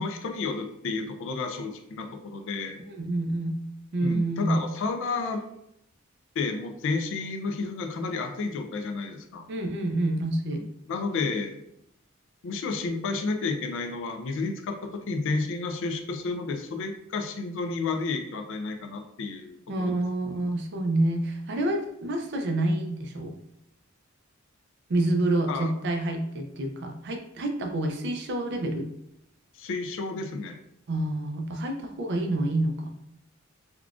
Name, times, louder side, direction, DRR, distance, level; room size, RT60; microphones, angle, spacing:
voice 1, 0.0-2.8 4.0-5.4 6.4-9.4 10.5-10.6 10.9-11.6 12.4-20.0 25.5-25.7 29.6-30.6, left 4 dB, 65° left, 6 dB, 0.4 m, -31 dB
voice 2, 2.9-3.6 3.9-4.7 9.5-10.6 19.7-23.4 24.9-28.9 30.9-32.9, right 1 dB, 55° right, 4 dB, 0.5 m, -28 dB
3.6 x 2.3 x 2.4 m, 0.77 s
head